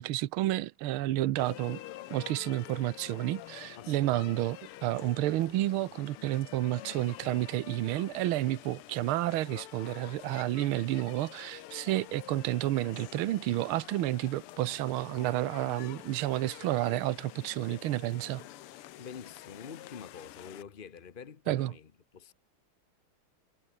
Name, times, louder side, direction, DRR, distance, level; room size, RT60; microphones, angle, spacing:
voice 1, 0.0-1.8 2.1-18.4 21.5-21.7, right 15 dB, 75° right, 1.6 m, -30 dB
voice 2, 1.0-1.3 3.8-4.3 19.0-22.3, left 6 dB, 55° left, 0.6 m, -47 dB
sound 1, 1.4-20.6, left 14 dB, 90° left, 1.8 m, -48 dB
omnidirectional pair, 2.4 m